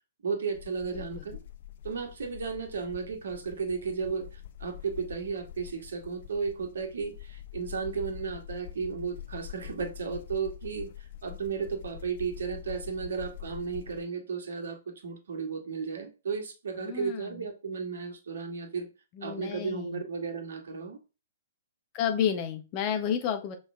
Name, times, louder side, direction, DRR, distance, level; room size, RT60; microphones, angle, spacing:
voice 1, 0.2-1.4 1.8-18.9 19.2-21.0, right 5 dB, 60° right, 1.8 m, -34 dB
sound 1, 0.5-14.0, left 12 dB, 50° left, 0.7 m, -45 dB
voice 2, 16.8-17.3 19.2-20.0 21.9-23.5, left 8 dB, 30° left, 1.4 m, -31 dB
6.2 x 5.4 x 3.6 m
figure-of-eight pair, 115°, 0 cm